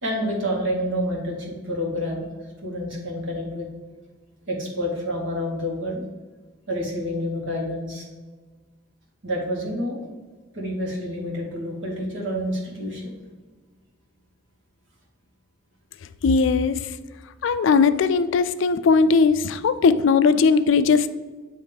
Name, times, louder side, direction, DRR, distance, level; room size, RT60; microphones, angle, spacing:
voice 1, 0.0-2.3 2.6-3.7 4.5-6.0 6.7-8.1 9.2-10.0 10.5-13.1, equal, 70° right, -2 dB, 1.7 m, -28 dB
voice 2, 16.2-16.9 17.4-21.1, left 5 dB, 65° left, 12 dB, 0.3 m, -18 dB
8.9 x 3.2 x 3.4 m, 1.3 s
head